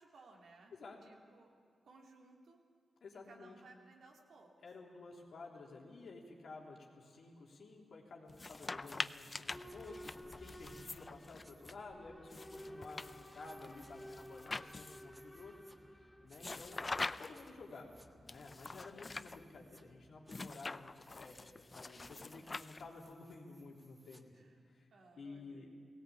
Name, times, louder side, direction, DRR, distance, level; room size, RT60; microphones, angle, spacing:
voice 1, 0.0-2.6 3.1-4.5 6.8-7.2 12.5-12.7 16.6-17.0 21.8-22.2 24.3-24.6 24.9-25.8, right 3 dB, 75° right, 1 dB, 2.7 m, -62 dB
voice 2, 3.0-3.6 4.6-10.1 10.4-16.8 17.2-24.9 25.2-25.7, left 3 dB, 75° left, -1 dB, 3.4 m, -53 dB
sound 1, 8.3-11.7 12.3-15.2 16.4-17.5 18.3-19.4 20.3-23.1, left 3 dB, 35° left, 0.5 m, -45 dB
sound 2, 9.4-9.8 10.0-10.4 11.4-11.8 13.4-13.9 15.1-15.8 16.3-17.1 17.3-18.1 19.2-19.8 20.3-24.2, right 1 dB, 15° right, 1.4 m, -67 dB
Boat Water vehicle / Alarm, 9.5-20.2, equal, 10° left, 1.3 m, -55 dB
18.0 x 17.0 x 8.5 m, 2.1 s
cardioid pair, 55°, 0 cm